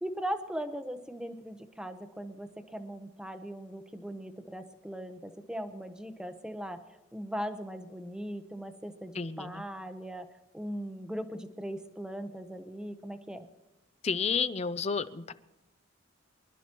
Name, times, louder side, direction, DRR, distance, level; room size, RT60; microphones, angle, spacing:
voice 1, 0.0-6.8 7.1-10.3 10.5-13.5, equal, 5° right, 8 dB, 0.8 m, -39 dB
voice 2, 9.2-9.5 14.0-15.4, left 5 dB, 30° left, 14 dB, 0.5 m, -31 dB
25.0 x 12.0 x 3.0 m, 1.0 s
head